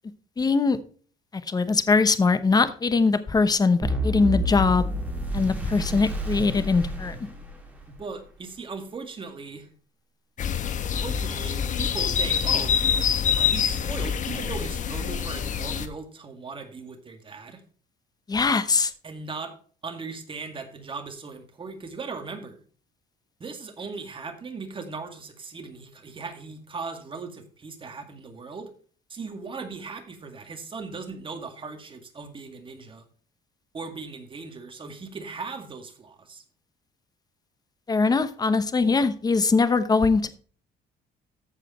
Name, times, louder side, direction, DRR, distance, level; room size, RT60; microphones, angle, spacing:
voice 1, 0.4-0.8 1.3-4.9 5.3-7.1 18.3-18.9 37.9-40.3, left 4 dB, 25° left, 12 dB, 0.9 m, -22 dB
sound 1, 3.8-7.9, equal, 10° right, 2.5 m, -29 dB
voice 2, 7.9-9.7 10.8-12.8 13.4-17.6 19.0-19.5 19.8-22.6 23.4-28.7 29.1-33.0 33.7-36.4, right 4 dB, 30° right, 6 dB, 2.1 m, -38 dB
sound 2, 10.4-15.9, left 8 dB, 50° left, 1.0 m, -26 dB
14.0 x 5.0 x 4.3 m, 0.43 s
cardioid pair, 110°, 17 cm